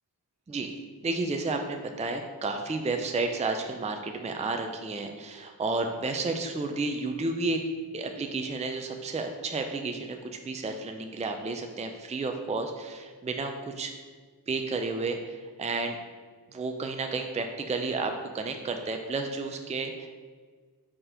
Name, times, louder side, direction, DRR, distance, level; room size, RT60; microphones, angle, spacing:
voice 1, 1.0-7.6 7.9-13.9 14.5-16.0 16.5-20.1, right 3 dB, 15° right, 4 dB, 0.4 m, -31 dB
4.4 x 4.3 x 5.0 m, 1.5 s
wide cardioid pair, 75°, 41 cm